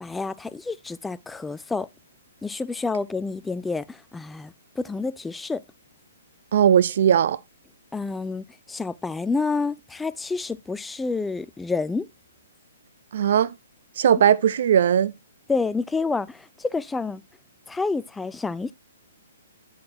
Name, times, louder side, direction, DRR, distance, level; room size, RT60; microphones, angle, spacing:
voice 1, 0.0-1.9 2.4-5.6 7.9-12.1 15.5-17.2 17.7-18.7, left 4 dB, 5° left, 0.3 m, -29 dB
voice 2, 6.5-7.4 13.1-13.5 14.0-15.1, right 9 dB, 60° right, 0.4 m, -18 dB
9.6 x 6.3 x 2.7 m
hypercardioid pair, 130°, 0 cm